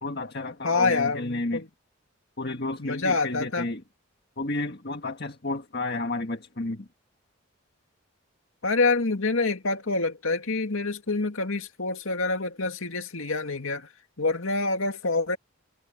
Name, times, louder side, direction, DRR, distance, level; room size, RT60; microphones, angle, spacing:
voice 1, 0.0-1.6 2.4-3.8 4.4-6.9, left 2 dB, 50° left, 1.7 m, -31 dB
voice 2, 0.6-1.7 2.8-3.7 8.6-13.9 14.2-15.4, left 3 dB, 80° left, 2.3 m, -26 dB
head